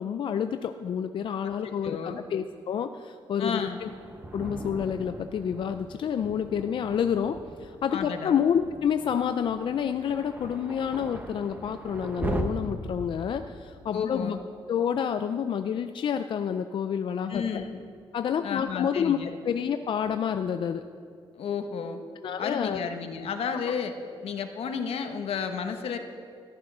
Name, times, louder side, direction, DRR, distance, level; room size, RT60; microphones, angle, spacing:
voice 1, 0.0-3.9 4.3-14.4 14.7-17.6 18.1-19.2 19.4-20.8 22.2-22.9 23.6-23.7, left 8 dB, 55° left, 9 dB, 0.4 m, -29 dB
voice 2, 1.8-2.2 3.4-3.8 7.9-8.4 13.9-14.4 17.3-17.7 18.4-19.3 21.4-22.0 22.4-23.9 24.2-26.0, left 6 dB, 80° left, 6 dB, 1.2 m, -32 dB
Thunder, 3.8-12.4, right 2 dB, 20° right, 1.1 m, -39 dB
14.5 x 11.0 x 6.1 m, 2.4 s
wide cardioid pair, 160°, 10 cm